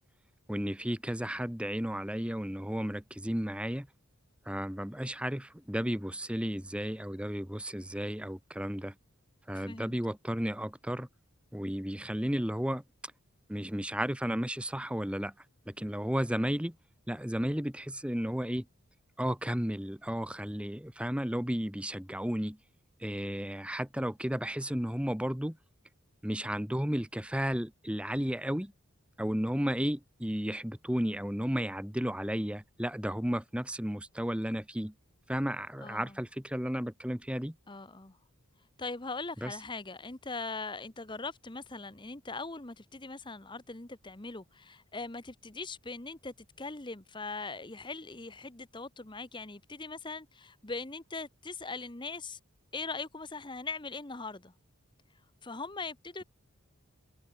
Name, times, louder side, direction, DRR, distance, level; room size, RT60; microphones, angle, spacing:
voice 1, 0.5-3.9 4.4-8.9 9.5-11.1 11.5-12.8 13.5-15.3 15.7-16.7 17.1-18.6 19.2-22.6 23.0-25.6 26.2-28.7 29.2-34.9 35.3-37.5 39.4-39.5, equal, 5° right, 1.3 m, -33 dB
voice 2, 9.5-10.0 35.8-36.2 37.7-38.2 38.8-52.4 52.7-54.5 55.4-56.2, left 3 dB, 20° left, 1.1 m, -41 dB
head